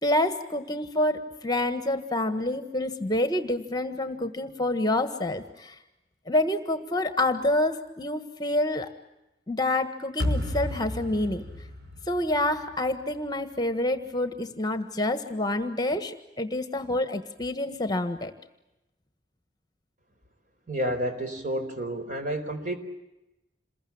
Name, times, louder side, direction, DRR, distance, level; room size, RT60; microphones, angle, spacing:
voice 1, 0.0-5.8 6.3-8.9 9.5-11.4 12.1-18.3, left 1 dB, 25° left, 9 dB, 1.6 m, -27 dB
sound 1, 10.2-13.3, left 1 dB, 65° right, 4.6 m, -32 dB
voice 2, 20.7-22.8, right 1 dB, 50° right, 6 dB, 4.6 m, -30 dB
28.0 x 22.0 x 8.8 m, 0.95 s
head